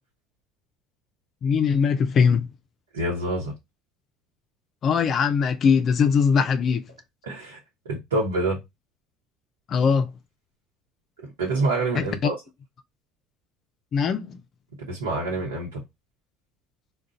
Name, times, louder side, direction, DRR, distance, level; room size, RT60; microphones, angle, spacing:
voice 1, 1.4-2.5 4.8-6.8 9.7-10.1 12.2-12.3 13.9-14.4, left 6 dB, 50° left, 0.4 m, -21 dB
voice 2, 2.9-3.5 7.2-7.6 7.8-8.6 11.2-12.4 14.9-15.8, right 2 dB, 90° right, 0.9 m, -26 dB
2.4 x 2.2 x 3.8 m
hypercardioid pair, 70°, 0 cm